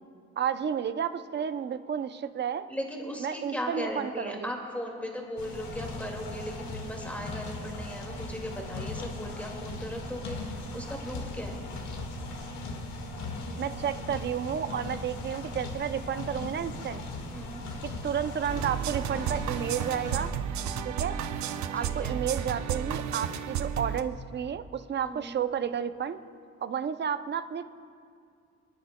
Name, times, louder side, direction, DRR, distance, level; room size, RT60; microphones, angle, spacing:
voice 1, 0.4-2.7 3.2-4.5 13.6-17.0 17.8-20.3 20.8-21.2 21.7-26.2 26.6-27.7, right 8 dB, 35° right, 12 dB, 0.5 m, -31 dB
voice 2, 2.7-11.6 17.3-17.6 21.8-22.2 25.0-25.4, equal, 5° left, 0 dB, 2.1 m, -37 dB
sound 1, 5.4-20.3, left 2 dB, 75° left, 1.8 m, -38 dB
sound 2, 18.4-24.0, right 8 dB, 70° right, 0.7 m, -32 dB
28.0 x 9.7 x 2.2 m, 2.3 s
cardioid pair, 100°, 29 cm